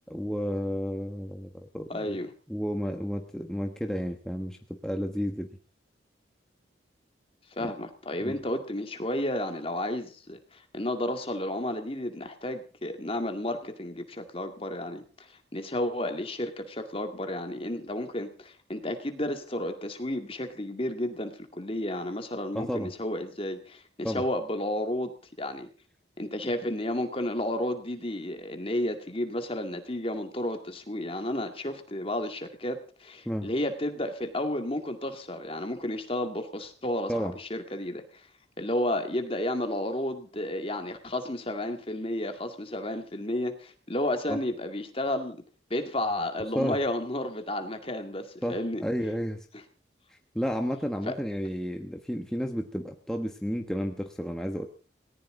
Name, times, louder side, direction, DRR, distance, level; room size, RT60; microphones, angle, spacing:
voice 1, 0.1-2.2 2.5-5.5 7.6-7.7 8.2-8.4 22.5-22.9 24.0-24.2 33.2-33.5 37.1-37.3 44.3-44.4 46.5-46.8 48.4-49.5 50.1-54.7, equal, 5° left, 3 dB, 1.2 m, -32 dB
voice 2, 1.9-2.3 7.6-15.3 15.5-25.1 25.4-25.7 26.2-38.2 38.6-45.4 45.7-48.8 51.1-51.2, left 1 dB, 30° left, 6 dB, 2.1 m, -32 dB
18.5 x 18.5 x 3.8 m, 0.39 s
head